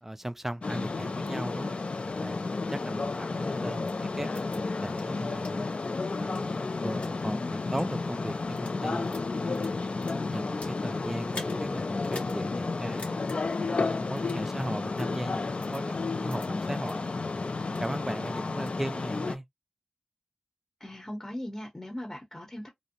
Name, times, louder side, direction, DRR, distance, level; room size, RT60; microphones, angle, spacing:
voice 1, 0.0-1.8 2.2-5.7 6.2-9.7 10.2-13.2 13.7-17.0 17.7-19.4, right 1 dB, 15° right, 0.3 m, -37 dB
sound 1, 0.6-19.4, left 3 dB, 70° left, 0.3 m, -32 dB
sound 2, 3.9-4.0 4.3-4.6 5.0-5.1 5.4-5.5 6.1-7.1 7.7-7.9 8.4-8.8 9.1-10.8 11.3-11.6 12.0-12.4 12.7-12.8 13.0-13.4 14.2-14.4 15.0-15.1 15.6-15.8 16.3-16.5 16.9-17.0 17.4-17.9 18.3-18.8, left 2 dB, 90° left, 1.3 m, -45 dB
voice 2, 20.8-22.7, left 1 dB, 20° left, 0.9 m, -39 dB
2.5 x 2.0 x 2.8 m
wide cardioid pair, 50°, 2 cm